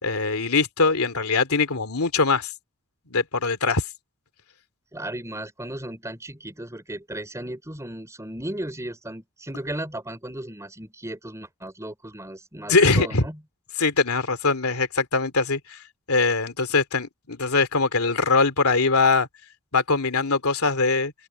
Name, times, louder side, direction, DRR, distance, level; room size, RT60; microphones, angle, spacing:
voice 1, 0.0-2.5 3.1-3.8 12.7-13.3 13.8-15.8 16.1-19.3 19.7-21.1, left 4 dB, 90° left, 2.7 m, -22 dB
voice 2, 4.9-13.4, right 1 dB, 15° right, 4.9 m, -35 dB
open air
head